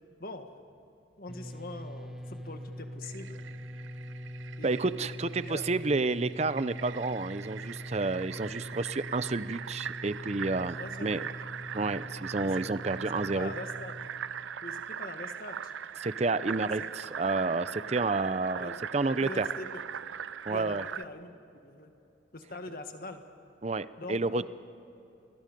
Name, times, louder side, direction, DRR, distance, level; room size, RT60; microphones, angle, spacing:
voice 1, 1.2-3.4 4.6-5.0 5.4-5.7 10.8-11.3 12.4-12.5 13.3-14.1 14.6-15.7 16.4-16.9 18.6-18.8 19.1-19.8 20.5-21.4 21.6-21.9 22.3-23.2 24.0-24.5, left 2 dB, 50° left, 6 dB, 1.7 m, -43 dB
sound 1, 1.3-14.1, equal, 5° right, 1.4 m, -43 dB
Fill (with liquid), 3.0-21.0, right 8 dB, 85° right, 0.5 m, -41 dB
voice 2, 4.6-11.2 11.7-13.5 16.0-19.5 20.5-20.8 23.6-24.5, right 3 dB, 35° right, 15 dB, 0.6 m, -30 dB
28.0 x 21.0 x 5.3 m, 2.9 s
head